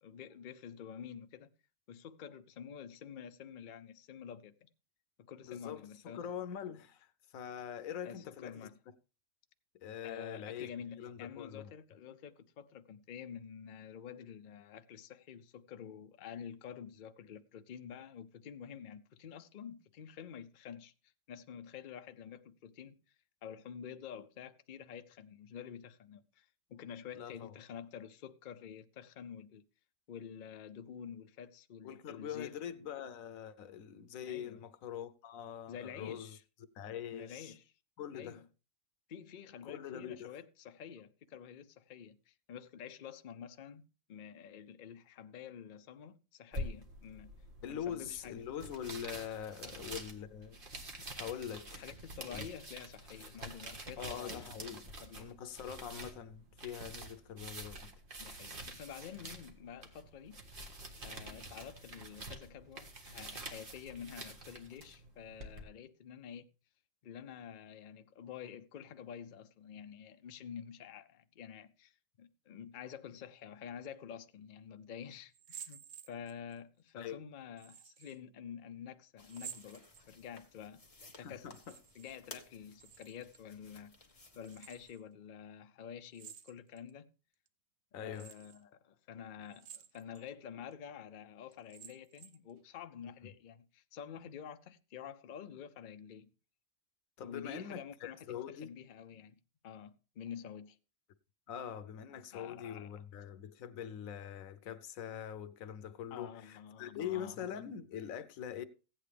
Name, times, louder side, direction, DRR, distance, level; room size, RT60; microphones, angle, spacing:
voice 1, 0.0-1.5 1.9-4.7 5.2-6.3 8.0-8.8 10.0-23.0 23.4-29.7 30.1-32.5 34.3-34.6 35.7-36.4 37.1-37.7 38.1-38.5 39.1-43.8 44.1-47.3 47.7-48.5 49.6-49.8 51.0-51.1 51.8-55.3 58.2-60.7 61.0-66.5 67.0-80.8 81.2-81.5 81.9-84.0 84.4-87.1 88.0-96.3 97.2-100.8 102.1-103.0 106.1-107.7, left 8 dB, 50° left, 0.6 m, -49 dB
voice 2, 5.4-7.1 7.3-8.7 9.7-10.7 11.0-11.7 27.1-27.5 31.8-36.4 36.7-37.6 38.0-38.4 39.6-40.3 47.6-50.6 51.2-51.8 52.3-52.4 54.0-54.9 55.2-57.9 77.0-77.2 81.2-81.8 87.9-88.3 97.2-98.7 101.5-108.7, left 9 dB, 90° left, 1.2 m, -43 dB
sound 1, 46.5-65.6, right 1 dB, 40° right, 1.6 m, -47 dB
sound 2, 75.3-76.6 77.6-78.2 79.2-80.4 81.4-82.2 82.4-83.4 84.4-85.0 86.1-86.9 87.5-87.6 88.1-88.6 89.5-90.2 90.7-90.8 91.5-92.5, right 8 dB, 60° right, 0.9 m, -52 dB
sound 3, 79.2-84.9, left 2 dB, 25° left, 1.4 m, -57 dB
15.0 x 8.9 x 3.4 m
omnidirectional pair, 1.4 m